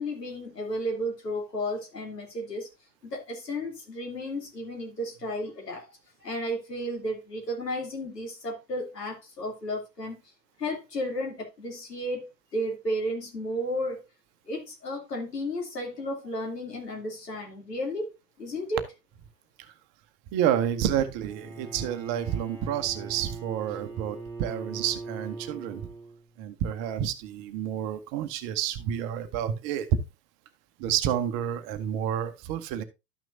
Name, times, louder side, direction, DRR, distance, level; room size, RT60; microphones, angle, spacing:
voice 1, 0.0-2.7 3.0-6.0 6.2-10.2 10.6-12.3 12.5-14.0 14.5-18.1 18.4-18.8, equal, 75° left, 2.9 m, -33 dB
voice 2, 20.3-25.9 26.4-30.0 30.8-32.8, right 10 dB, 30° right, 0.8 m, -29 dB
Bowed string instrument, 21.2-26.4, right 3 dB, 5° left, 2.5 m, -41 dB
12.5 x 6.1 x 2.6 m
figure-of-eight pair, 90°, 49 cm